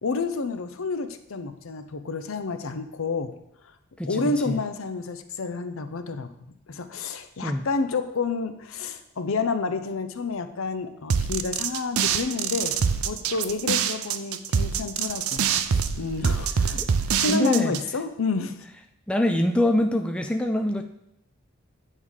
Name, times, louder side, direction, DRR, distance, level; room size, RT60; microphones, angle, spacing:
voice 1, 0.0-3.3 4.1-6.3 6.7-12.7 13.0-18.6, left 4 dB, 65° left, 9 dB, 0.6 m, -29 dB
voice 2, 4.0-4.6 7.4-7.6 16.8-16.9 17.3-17.7 19.1-20.8, left 1 dB, 5° left, 5 dB, 0.3 m, -24 dB
sound 1, 11.1-17.9, right 7 dB, 80° right, 0.5 m, -25 dB
8.7 x 3.6 x 6.3 m, 0.79 s
head